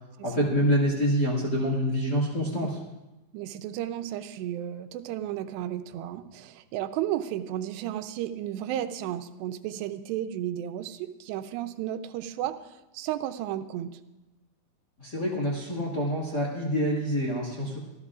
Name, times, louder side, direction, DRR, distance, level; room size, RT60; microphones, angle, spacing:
voice 1, 0.2-2.8 15.0-17.8, equal, 35° left, -4 dB, 1.7 m, -26 dB
voice 2, 3.3-12.6 12.9-13.9, right 12 dB, 90° right, 9 dB, 2.9 m, -33 dB
25.5 x 14.0 x 2.5 m, 1.0 s
omnidirectional pair, 4.8 m